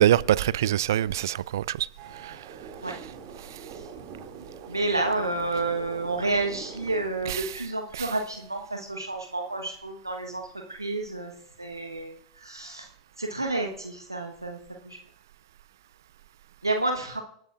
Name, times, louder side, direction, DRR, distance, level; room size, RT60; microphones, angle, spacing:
voice 1, 0.0-1.9 2.2-2.5 2.9-3.0 3.5-3.6 7.2-7.7 7.9-8.1, right 12 dB, 65° right, 0.3 m, -25 dB
sound 1, 2.0-7.1, right 6 dB, 45° right, 2.4 m, -43 dB
voice 2, 4.7-12.9 13.2-15.0 16.6-17.2, right 2 dB, 90° right, 1.2 m, -30 dB
26.5 x 9.1 x 2.5 m
figure-of-eight pair, 85°, 2 cm